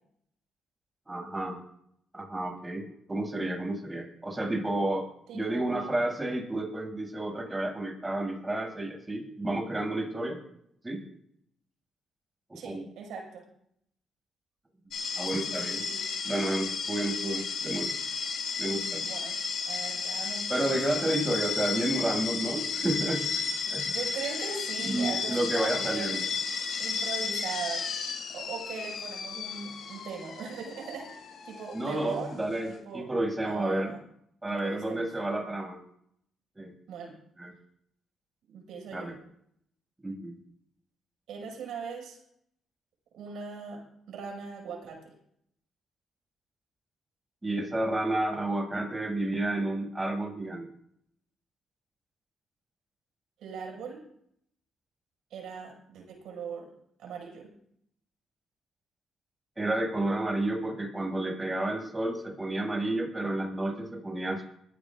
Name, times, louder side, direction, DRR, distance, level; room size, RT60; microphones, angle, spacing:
voice 1, 1.1-1.6 2.1-5.1 5.3-10.4 10.8-11.0 12.5-12.8 15.2-15.8 16.2-17.9 18.6-19.1 20.5-23.8 24.8-26.3 31.7-33.9 34.4-35.8 36.6-36.7 37.4-37.5 38.9-39.1 40.0-40.4 47.4-50.7 59.6-64.4, right 1 dB, 15° right, 0 dB, 7.2 m, -31 dB
voice 2, 5.3-5.9 12.5-13.4 15.3-16.0 19.0-19.3 19.7-21.1 23.8-26.3 26.8-27.8 28.3-31.1 31.5-32.4 32.7-33.1 33.4-34.0 34.5-35.1 36.9-37.1 38.5-39.2 41.3-42.2 43.1-43.8 44.1-45.1 53.4-54.0 55.3-56.7 57.0-57.5, right 5 dB, 80° right, 1 dB, 6.0 m, -40 dB
sound 1, 14.9-32.8, left 5 dB, 70° left, 6.5 m, -33 dB
21.0 x 16.0 x 2.6 m, 0.71 s
cardioid pair, 90°, 0 cm